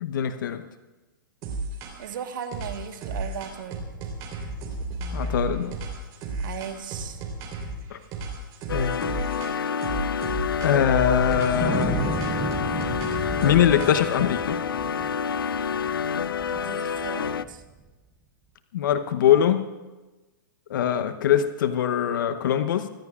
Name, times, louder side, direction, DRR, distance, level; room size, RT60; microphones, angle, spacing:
voice 1, 0.0-0.6 5.1-5.7 7.9-8.0 8.7-9.0 10.6-12.0 13.4-14.6 18.7-19.7 20.7-22.9, left 9 dB, 65° left, 10 dB, 0.9 m, -22 dB
sound 1, 1.4-2.1 2.5-7.8 8.1-9.5 9.8-14.2, right 2 dB, 35° right, 3.6 m, -33 dB
voice 2, 2.0-3.9 6.4-7.2 16.5-17.6, right 8 dB, 65° right, 7 dB, 1.4 m, -37 dB
sound 2, 8.7-17.4, left 7 dB, 90° left, 0.5 m, -28 dB
Wind, 11.3-17.8, right 4 dB, 10° right, 0.8 m, -34 dB
24.0 x 15.5 x 2.4 m, 1.2 s
hypercardioid pair, 135°, 11 cm